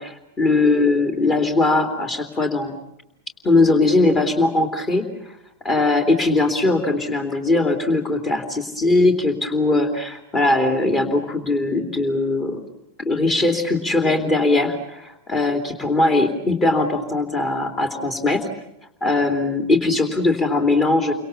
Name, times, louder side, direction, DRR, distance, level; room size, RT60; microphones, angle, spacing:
voice 1, 0.0-2.8 3.4-5.4 5.6-12.6 13.0-18.4 19.0-21.1, left 2 dB, 20° left, 6 dB, 3.2 m, -20 dB
29.5 x 25.5 x 7.0 m, 0.82 s
figure-of-eight pair, 90°, 0 cm